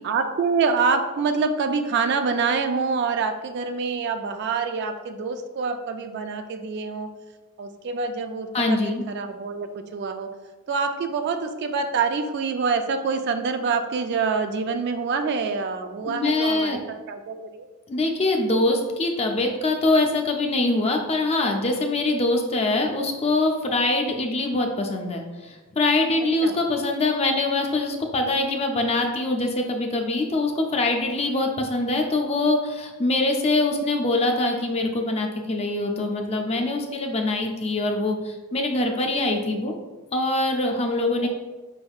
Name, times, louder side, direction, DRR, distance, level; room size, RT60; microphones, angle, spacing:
voice 1, 0.0-7.1 7.6-10.3 10.7-17.7 26.4-26.6, right 5 dB, 50° right, 7 dB, 0.3 m, -26 dB
voice 2, 8.5-9.0 16.1-16.8 17.9-39.7 40.1-41.3, left 2 dB, 30° left, 3 dB, 0.4 m, -23 dB
5.3 x 3.4 x 2.3 m, 1.2 s
head